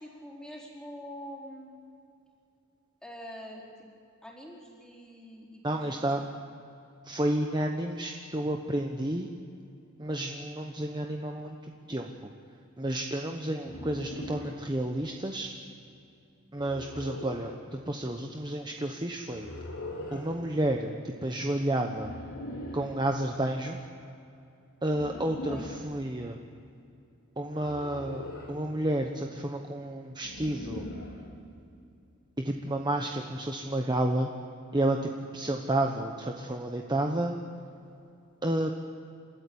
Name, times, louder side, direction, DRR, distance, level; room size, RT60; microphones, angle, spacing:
voice 1, 0.0-1.8 3.0-3.9 4.2-6.1 25.1-25.6, equal, 5° left, -3 dB, 4.6 m, -45 dB
voice 2, 5.6-6.3 7.0-9.3 10.0-11.6 11.9-12.3 12.8-15.5 16.5-19.5 20.1-22.1 22.7-23.8 24.8-26.4 27.4-30.9 32.4-34.3 34.7-37.4 38.4-38.7, right 1 dB, 20° right, 3 dB, 1.1 m, -31 dB
sound 1, 13.6-14.6 16.5-17.5 19.3-20.3 21.9-22.9 24.9-25.9 27.5-28.6 30.2-31.2, left 1 dB, 80° left, 4.4 m, -41 dB
29.5 x 13.5 x 8.7 m, 2.6 s
head